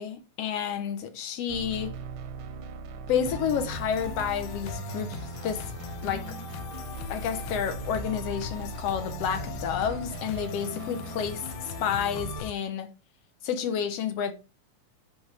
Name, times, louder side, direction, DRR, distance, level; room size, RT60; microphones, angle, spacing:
voice 1, 0.0-1.9 3.1-5.7 6.0-6.3 7.1-11.4 11.8-12.9 13.4-14.3, left 8 dB, 60° left, 2.0 m, -30 dB
sound 1, 1.5-12.4, right 6 dB, 85° right, 2.5 m, -39 dB
sound 2, 3.3-12.5, left 10 dB, 80° left, 2.1 m, -40 dB
8.1 x 6.1 x 3.4 m
omnidirectional pair, 3.6 m